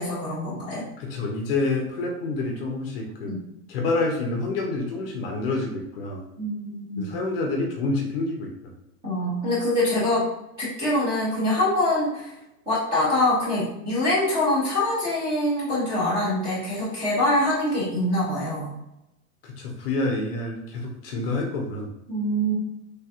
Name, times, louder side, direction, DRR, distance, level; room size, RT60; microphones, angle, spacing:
voice 1, 0.0-0.8 3.3-3.4 6.4-7.1 9.0-10.3 10.6-12.3 12.7-18.7 22.1-22.5, left 1 dB, 10° right, -10 dB, 0.4 m, -24 dB
voice 2, 1.0-3.4 3.7-6.2 7.0-8.5 19.4-21.9, left 2 dB, 40° left, 1 dB, 0.5 m, -28 dB
3.3 x 2.8 x 2.3 m, 0.88 s
supercardioid pair, 160°, 46 cm